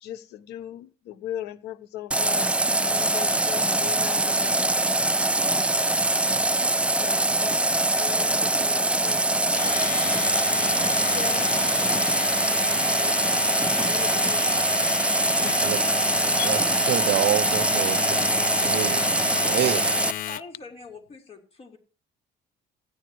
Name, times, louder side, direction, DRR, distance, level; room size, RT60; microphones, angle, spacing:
voice 1, 0.0-2.5 2.8-4.8 7.0-10.1 10.8-12.1 13.0-13.2 13.8-14.6 15.4-15.7 16.4-16.6, left 12 dB, 80° left, 0.9 m, -38 dB
Water tap faucet, 2.1-20.1, right 2 dB, 5° right, 0.5 m, -23 dB
Domestic sounds home sounds, 9.4-20.6, left 12 dB, 55° left, 0.4 m, -32 dB
voice 2, 16.9-18.2 18.6-19.0 19.4-20.0, right 15 dB, 70° right, 0.6 m, -27 dB
voice 3, 20.2-21.8, left 3 dB, 35° left, 3.4 m, -43 dB
16.5 x 10.0 x 3.0 m
cardioid pair, 110°, 17 cm